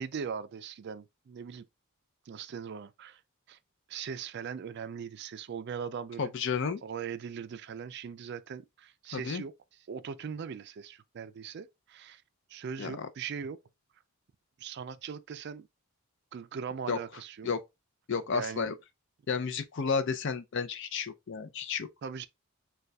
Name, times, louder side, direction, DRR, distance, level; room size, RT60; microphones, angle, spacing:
voice 1, 0.0-1.7 2.3-3.2 3.5-3.6 3.9-6.3 6.8-9.5 9.9-12.2 12.5-13.6 14.6-15.7 16.3-17.5 18.3-18.7 22.0-22.3, right 6 dB, 50° right, 0.3 m, -40 dB
voice 2, 6.2-6.8 9.1-9.4 12.8-13.1 16.9-17.0 17.4-17.6 18.1-18.7 19.3-21.9, left 5 dB, 55° left, 0.5 m, -32 dB
6.6 x 2.3 x 2.2 m
head